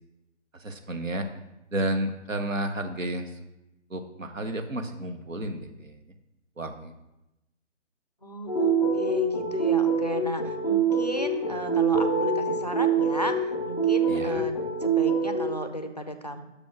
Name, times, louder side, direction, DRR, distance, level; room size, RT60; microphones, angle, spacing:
voice 1, 0.5-1.3 1.7-3.3 3.9-6.0 6.6-6.9 14.1-14.5, right 1 dB, 80° right, 6 dB, 1.0 m, -31 dB
voice 2, 8.2-16.4, equal, 35° left, 8 dB, 0.4 m, -34 dB
sound 1, 8.5-15.4, right 5 dB, 5° left, 1.0 m, -25 dB
6.5 x 5.2 x 5.8 m, 0.95 s
figure-of-eight pair, 150°, 38 cm